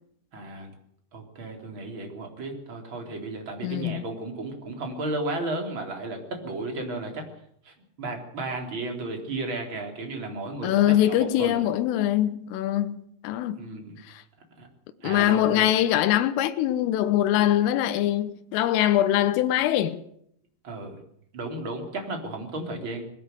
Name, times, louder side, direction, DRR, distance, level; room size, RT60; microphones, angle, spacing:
voice 1, 0.3-0.7 1.1-7.2 7.6-10.8 11.0-11.6 13.5-14.0 14.6-14.7 15.0-15.7 20.6-21.0 21.3-23.0, right 2 dB, 25° right, 3.9 m, -34 dB
voice 2, 3.6-4.0 10.6-13.6 14.1-14.2 15.0-20.0, left 12 dB, 85° left, 3.6 m, -23 dB
21.5 x 13.5 x 9.4 m
omnidirectional pair, 5.7 m